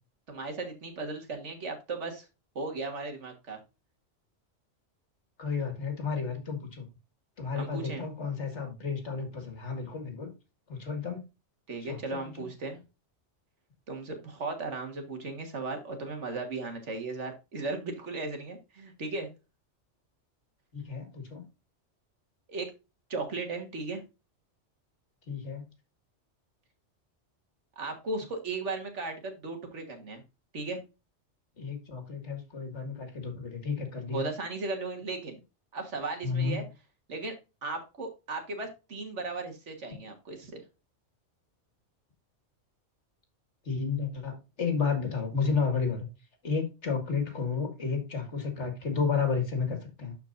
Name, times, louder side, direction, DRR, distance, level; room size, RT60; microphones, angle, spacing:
voice 1, 0.3-2.3 2.6-3.6 7.5-8.1 11.7-12.8 13.9-19.3 22.5-22.7 23.1-24.0 27.8-30.2 30.5-30.8 34.1-35.4 35.7-36.6 37.1-37.3 37.6-40.6, right 3 dB, 75° right, 5 dB, 1.9 m, -36 dB
voice 2, 5.4-6.9 7.4-10.3 10.7-11.2 11.9-12.0 12.4-12.5 20.7-21.4 25.3-25.6 31.6-34.3 36.2-36.6 43.7-46.1 46.4-50.1, left 5 dB, 75° left, 5 dB, 2.2 m, -32 dB
12.0 x 4.5 x 2.6 m, 0.28 s
omnidirectional pair, 1.2 m